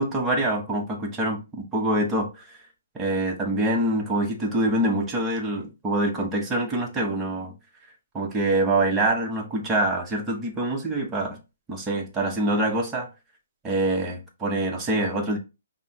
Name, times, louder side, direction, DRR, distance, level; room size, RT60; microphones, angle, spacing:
voice 1, 0.0-2.3 2.9-7.5 8.1-11.4 11.7-13.1 13.6-15.4, right 1 dB, 15° right, 1.0 m, -25 dB
5.3 x 2.1 x 3.6 m
figure-of-eight pair, 130°, 0 cm